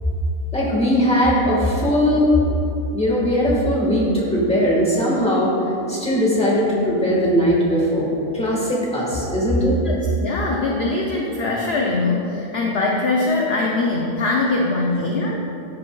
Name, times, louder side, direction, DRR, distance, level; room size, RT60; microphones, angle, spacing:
voice 1, 0.5-2.3 2.9-5.5 5.9-9.8, equal, 5° left, -6 dB, 1.4 m, -19 dB
voice 2, 9.8-15.4, left 3 dB, 55° left, -2 dB, 0.8 m, -22 dB
12.5 x 5.3 x 2.3 m, 2.8 s
omnidirectional pair, 1.5 m